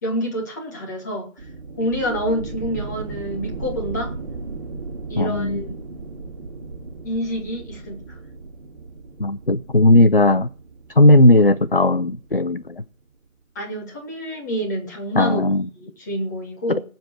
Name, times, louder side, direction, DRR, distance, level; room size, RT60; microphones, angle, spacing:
voice 1, 0.0-1.3 1.8-4.1 5.1-6.1 7.0-8.0 13.5-15.5 15.8-16.8, equal, 15° left, 0 dB, 2.4 m, -27 dB
sound 1, 1.4-12.8, right 3 dB, 25° right, 2.6 m, -36 dB
voice 2, 5.2-5.6 9.2-10.5 11.0-12.8 15.2-15.7, left 2 dB, 45° left, 14 dB, 0.5 m, -16 dB
19.0 x 7.9 x 6.2 m, 0.40 s
figure-of-eight pair, 160°, 41 cm